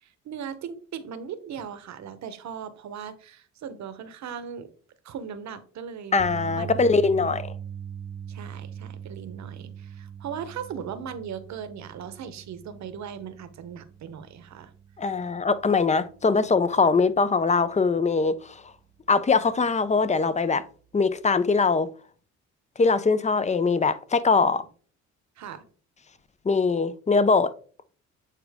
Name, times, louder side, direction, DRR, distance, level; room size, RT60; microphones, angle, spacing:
voice 1, 0.0-4.7 5.0-7.3 8.3-14.7 25.4-25.6, right 7 dB, 65° right, 1.0 m, -38 dB
voice 2, 6.1-7.5 15.0-18.5 19.1-20.6 20.9-21.9 22.8-24.6 26.5-27.5, left 4 dB, 25° left, 0.5 m, -22 dB
sound 1, 6.2-18.5 18.8-19.1 21.2-21.3, right 8 dB, 40° right, 0.8 m, -41 dB
8.4 x 3.9 x 3.5 m
cardioid pair, 90°, 30 cm